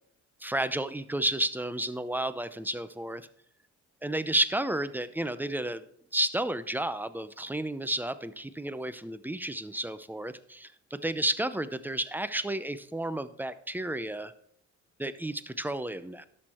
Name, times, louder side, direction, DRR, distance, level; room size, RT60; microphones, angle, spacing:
voice 1, 0.4-3.3 4.0-5.8 6.1-10.7 11.0-14.3 15.0-16.3, right 1 dB, 5° right, 14 dB, 0.6 m, -31 dB
11.5 x 6.5 x 4.3 m, 0.66 s
cardioid pair, 90°, 30 cm